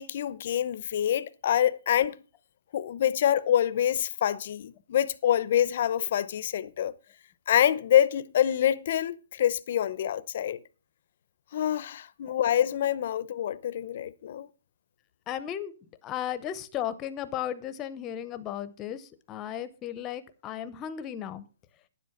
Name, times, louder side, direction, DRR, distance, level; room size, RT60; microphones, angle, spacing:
voice 1, 0.0-2.2 2.7-6.9 7.5-10.6 11.5-14.5, left 10 dB, 45° left, 0.7 m, -26 dB
voice 2, 15.3-15.7 16.0-21.5, left 10 dB, 20° left, 0.8 m, -35 dB
10.0 x 7.7 x 5.8 m
hypercardioid pair, 165°, 0 cm